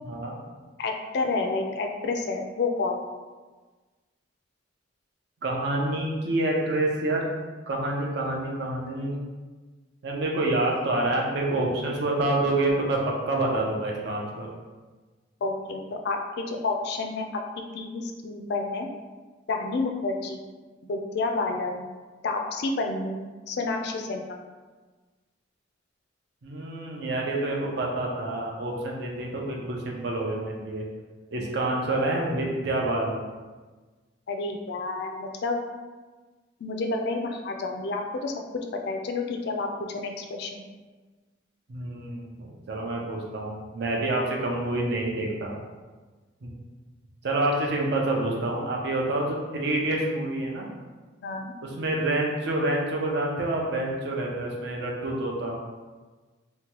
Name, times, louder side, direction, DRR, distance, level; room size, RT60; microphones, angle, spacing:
voice 1, 0.0-0.4 5.4-7.2 7.7-9.2 10.0-14.5 26.4-30.8 31.3-33.2 41.7-45.6 46.4-46.5 47.2-50.7 51.6-55.6, right 2 dB, 60° right, -1 dB, 0.5 m, -27 dB
voice 2, 0.8-3.1 15.4-17.3 17.7-18.9 19.5-20.4 20.9-21.8 22.2-23.2 23.5-24.4 34.3-35.6 36.6-38.3 38.9-40.6 47.3-47.4 51.2-51.5, left 3 dB, 55° left, 3 dB, 0.3 m, -29 dB
2.9 x 2.2 x 2.9 m, 1.3 s
head